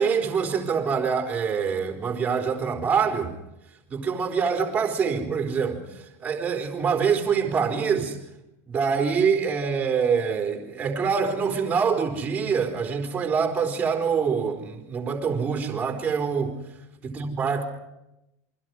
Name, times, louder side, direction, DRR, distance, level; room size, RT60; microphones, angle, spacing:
voice 1, 0.0-3.3 3.9-8.2 8.7-16.6 17.0-17.6, right 6 dB, 15° right, 4.2 m, -25 dB
28.5 x 24.5 x 4.8 m
supercardioid pair, 170°, 9 cm